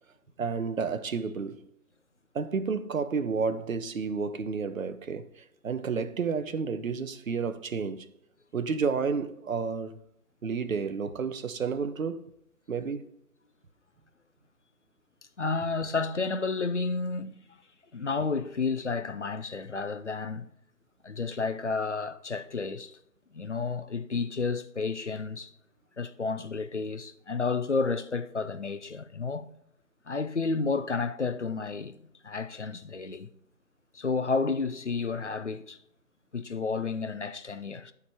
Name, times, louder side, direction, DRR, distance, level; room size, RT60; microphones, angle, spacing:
voice 1, 0.4-1.6 2.3-8.1 8.5-10.0 10.4-12.3 12.7-13.1, right 5 dB, 60° right, 0.7 m, -31 dB
voice 2, 15.4-17.3 17.9-20.5 21.0-23.0 23.3-25.5 26.0-29.5 30.1-32.0 32.2-33.3 33.9-35.8 36.3-37.9, left 4 dB, 50° left, 0.5 m, -31 dB
11.5 x 4.7 x 3.4 m
figure-of-eight pair, 150°, 47 cm